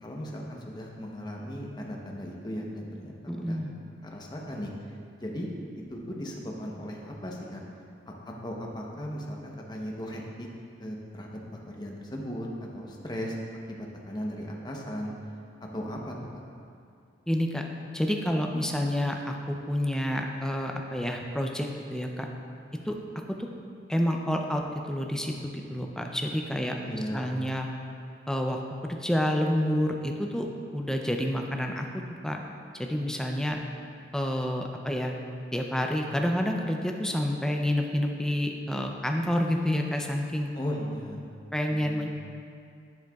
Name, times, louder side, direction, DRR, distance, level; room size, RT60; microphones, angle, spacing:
voice 1, 0.0-3.6 4.0-4.7 5.2-5.5 5.7-7.6 8.1-10.5 10.8-11.4 11.7-13.3 13.7-15.1 15.6-16.4 26.6-27.4 40.5-41.3 41.7-42.1, equal, 20° left, -1 dB, 0.8 m, -37 dB
voice 2, 3.3-3.7 17.3-17.6 17.9-22.3 22.9-23.0 23.4-23.5 23.9-24.6 24.9-26.7 27.1-27.7 28.3-30.5 30.7-31.9 32.2-32.4 32.7-33.6 34.1-35.1 35.5-40.5 41.5-42.1, equal, 5° left, 2 dB, 0.5 m, -28 dB
10.5 x 7.7 x 2.3 m, 2.4 s
head